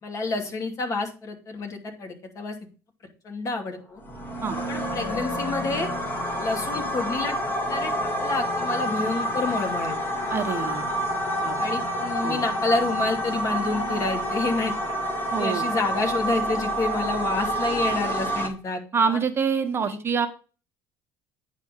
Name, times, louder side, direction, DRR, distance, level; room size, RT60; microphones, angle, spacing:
voice 1, 0.0-2.6 3.2-4.0 4.7-5.9 6.4-7.9 8.2-10.0 11.6-15.0 15.4-18.8 19.1-19.2 19.9-20.0, left 3 dB, 40° left, 4 dB, 2.5 m, -28 dB
sound 1, 4.0-18.5, equal, 25° left, 2.2 m, -28 dB
voice 2, 10.3-10.8 11.4-11.6 12.2-12.4 15.3-15.7 18.9-20.3, right 6 dB, 30° right, 6 dB, 1.2 m, -25 dB
9.6 x 4.3 x 6.7 m, 0.35 s
supercardioid pair, 105°, 8 cm